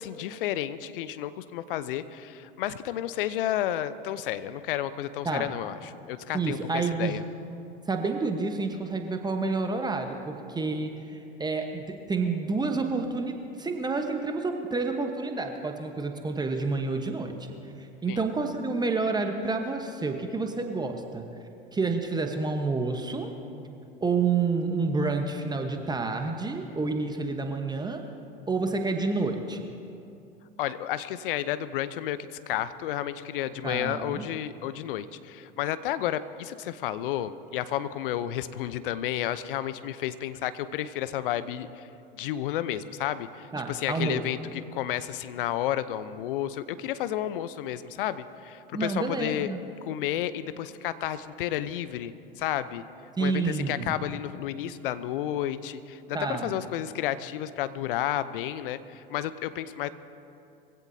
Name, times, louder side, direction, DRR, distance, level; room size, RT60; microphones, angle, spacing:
voice 1, 0.0-7.2 18.1-18.2 30.6-32.2 32.5-41.9 42.1-49.5 49.8-52.8 53.2-59.9, left 12 dB, 65° left, 14 dB, 0.8 m, -31 dB
voice 2, 6.3-7.2 7.9-17.3 17.8-21.3 21.7-23.3 24.0-28.0 28.5-29.7 33.6-34.3 43.5-44.2 48.7-49.6 53.2-53.9 56.1-56.6, right 4 dB, 15° right, 5 dB, 1.1 m, -29 dB
23.0 x 16.5 x 2.8 m, 2.6 s
hypercardioid pair, 85°, 29 cm